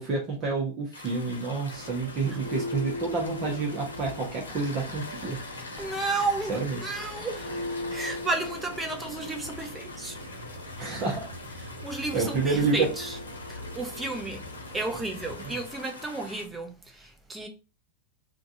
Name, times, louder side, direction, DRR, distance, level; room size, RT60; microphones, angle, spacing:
voice 1, 0.0-5.4 6.5-6.8 10.8-11.3 12.1-12.9, right 4 dB, 30° right, 1.1 m, -28 dB
sound 1, 0.9-16.4, left 3 dB, 70° left, 1.0 m, -44 dB
Church bell, 1.6-15.8, left 1 dB, 75° right, 0.8 m, -40 dB
voice 2, 5.8-10.2 11.8-13.2 13.5-14.5 14.7-17.5, right 2 dB, 10° right, 0.8 m, -33 dB
3.7 x 2.5 x 2.8 m
figure-of-eight pair, 90°, 0 cm